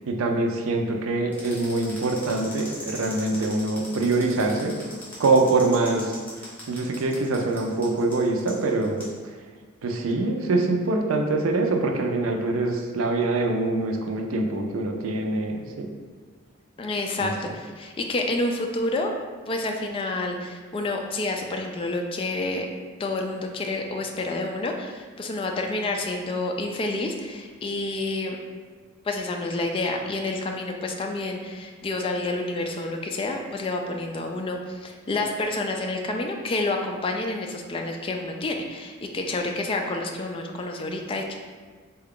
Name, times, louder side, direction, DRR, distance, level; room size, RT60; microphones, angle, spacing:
voice 1, 0.1-4.8 5.2-6.2 6.7-9.0 9.8-15.9 17.2-17.3, right 2 dB, 90° right, 3 dB, 0.5 m, -24 dB
sound 1, 1.3-9.1, left 1 dB, 10° left, 0.9 m, -40 dB
voice 2, 16.8-19.1 19.5-22.7 23.0-28.4 29.0-41.4, left 2 dB, 25° left, 2 dB, 0.3 m, -29 dB
3.6 x 2.3 x 3.6 m, 1.5 s
head